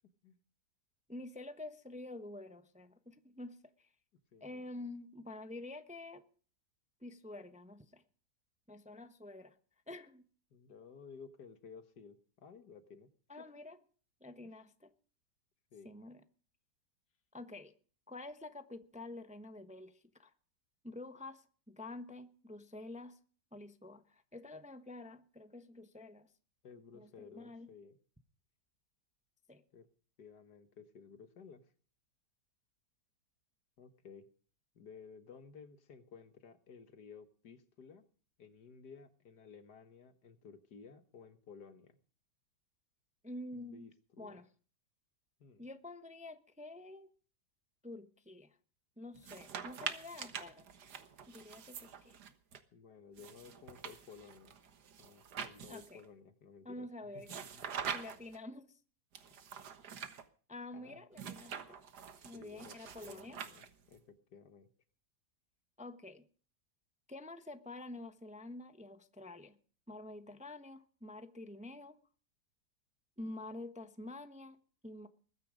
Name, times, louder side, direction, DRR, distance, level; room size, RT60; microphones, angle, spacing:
voice 1, 1.1-3.9 4.4-6.2 7.0-8.0 8.7-9.6 9.9-10.2 13.3-13.8 14.2-14.9 15.8-16.2 17.3-17.7 18.1-20.3 20.8-23.2 23.5-26.3 26.9-27.7 29.5-29.6 43.2-43.9 44.2-44.5 45.6-47.1 47.8-48.6 49.0-50.7 51.3-52.2 55.7-56.0 56.6-57.3 57.9-58.7 60.5-61.8 62.2-63.4 65.8-66.2 67.1-69.6 69.9-72.0 73.2-75.1, left 2 dB, 5° right, 0.8 m, -48 dB
voice 2, 4.3-4.6 10.5-13.5 15.7-15.9 26.6-28.0 29.7-29.9 30.2-31.6 33.8-34.3 34.8-38.1 38.4-42.0 43.5-44.4 45.4-45.7 52.7-54.6 55.0-57.2 57.5-57.6 60.7-61.0 62.2-62.8 63.0-64.7, left 5 dB, 75° left, 1.9 m, -55 dB
sound 1, 49.2-52.6 53.2-56.1 57.2-58.4 59.2-60.2 61.1-64.0, right 7 dB, 70° right, 1.9 m, -45 dB
21.0 x 9.8 x 5.1 m
omnidirectional pair, 1.8 m